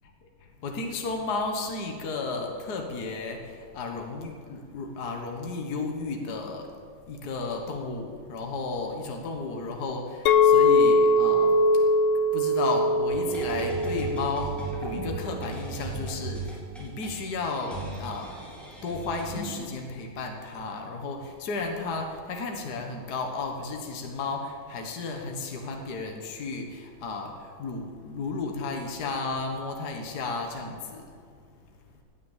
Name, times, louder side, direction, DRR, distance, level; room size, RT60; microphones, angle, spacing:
voice 1, 0.6-6.7 7.1-11.9 12.3-18.4 18.8-31.1, left 3 dB, 50° left, 2 dB, 1.9 m, -33 dB
Chink clink, 10.3-15.5, left 2 dB, 90° left, 1.6 m, -22 dB
sound 1, 13.1-19.6, right 2 dB, ahead, 3.8 m, -37 dB
17.5 x 9.6 x 7.4 m, 2.1 s
omnidirectional pair, 2.3 m